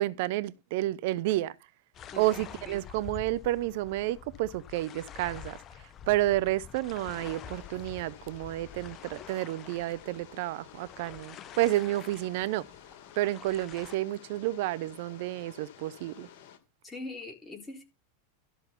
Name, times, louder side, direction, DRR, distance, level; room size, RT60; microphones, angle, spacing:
voice 1, 0.0-1.5 2.2-12.7 13.2-16.3, right 16 dB, 60° right, 0.6 m, -30 dB
sound 1, 1.9-14.0, left 9 dB, 35° left, 0.8 m, -47 dB
voice 2, 2.1-2.8 16.8-17.8, left 2 dB, 15° left, 3.9 m, -42 dB
sound 2, 7.0-16.6, left 9 dB, 60° left, 2.4 m, -52 dB
13.0 x 5.6 x 5.7 m
hypercardioid pair, 95°, 0 cm